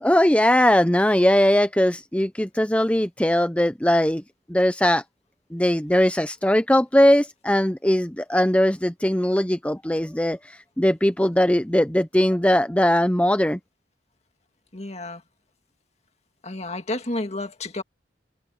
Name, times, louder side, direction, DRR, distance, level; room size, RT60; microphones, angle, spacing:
voice 1, 0.0-4.2 4.5-5.0 5.5-10.4 10.8-13.6, left 1 dB, 5° left, 0.7 m, -20 dB
voice 2, 14.7-15.2 16.4-17.8, left 2 dB, 35° left, 2.1 m, -31 dB
head